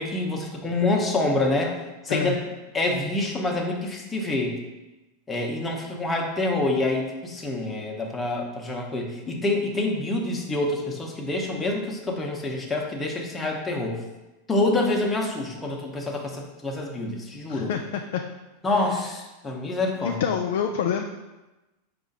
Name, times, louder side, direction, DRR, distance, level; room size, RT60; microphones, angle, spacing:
voice 1, 0.0-1.7 2.0-2.4 2.7-4.5 5.3-14.0 14.5-17.7 18.6-20.3, left 2 dB, 15° left, 0 dB, 0.8 m, -26 dB
voice 2, 17.5-18.2 19.0-19.1 20.0-21.0, left 8 dB, 70° left, 3 dB, 0.3 m, -27 dB
4.8 x 2.5 x 3.9 m, 1.1 s
hypercardioid pair, 110°, 0 cm